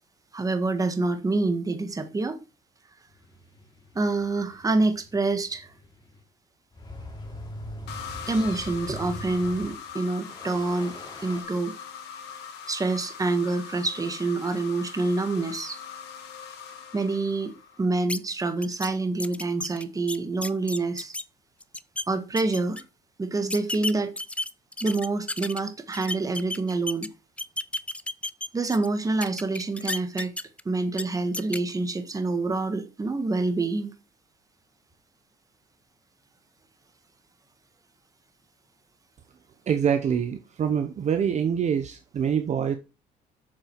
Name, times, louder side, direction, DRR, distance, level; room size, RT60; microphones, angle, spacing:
voice 1, 0.3-2.4 3.9-5.7 8.3-11.7 12.7-15.8 16.9-21.1 22.1-22.8 23.2-24.1 24.8-27.1 28.5-30.3 30.6-33.9, right 3 dB, 20° right, 1.6 m, -27 dB
sound 1, 3.1-6.2 6.7-9.8 10.2-11.4, left 1 dB, 25° left, 3.1 m, -42 dB
sound 2, 7.9-17.8, left 7 dB, 85° left, 2.3 m, -41 dB
sound 3, 18.1-18.2 18.6-18.9 19.2-21.2 21.6-22.0 22.4-22.8 23.5-25.6 25.9-27.1 27.4-28.9 29.2-30.6 30.9-31.0 31.3-31.6, left 2 dB, 5° left, 0.5 m, -32 dB
voice 2, 39.7-42.8, right 7 dB, 45° right, 0.9 m, -25 dB
7.5 x 6.9 x 4.7 m
cardioid pair, 110°, 17 cm